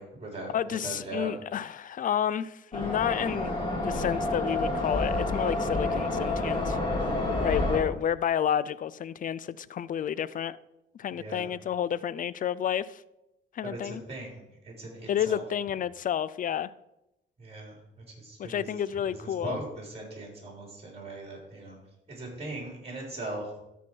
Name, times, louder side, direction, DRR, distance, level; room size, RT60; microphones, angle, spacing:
voice 1, 0.0-1.3 7.3-7.6 11.2-11.5 13.6-15.4 17.4-17.8 18.2-18.7 19.1-21.8 22.1-23.5, right 2 dB, 30° right, 3.7 m, -39 dB
voice 2, 0.5-6.8 7.4-10.6 10.9-13.0 13.5-14.0 15.1-16.7 18.4-19.6, left 9 dB, 45° left, 0.4 m, -30 dB
sound 1, 2.7-7.8, left 2 dB, 25° left, 2.6 m, -29 dB
13.0 x 4.6 x 4.5 m
cardioid pair, 90°, 20 cm